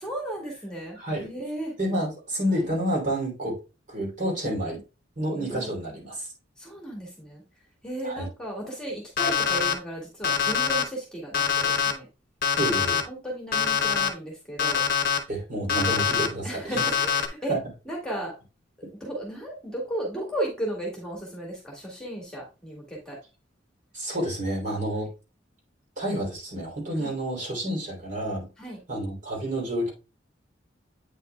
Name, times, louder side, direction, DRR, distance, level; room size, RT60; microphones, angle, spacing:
voice 1, 0.0-1.7 2.5-2.6 5.4-5.7 6.6-7.4 7.8-12.1 13.1-14.8 16.4-17.6 17.9-18.3 19.0-23.2 27.0-27.1 28.6-28.8, right 1 dB, 5° left, -1 dB, 1.9 m, -34 dB
voice 2, 1.0-1.3 1.8-3.6 3.9-4.8 5.2-6.3 8.0-8.3 12.6-13.0 15.3-16.8 17.5-17.6 23.9-25.1 26.0-28.5 28.9-29.9, right 1 dB, 40° right, -2 dB, 3.1 m, -29 dB
Alarm, 9.2-9.7 10.2-10.8 11.3-11.9 12.4-13.0 13.5-14.1 14.6-15.2 15.7-16.3 16.8-17.3, left 7 dB, 50° left, 1.0 m, -24 dB
8.6 x 5.7 x 2.2 m, 0.30 s
head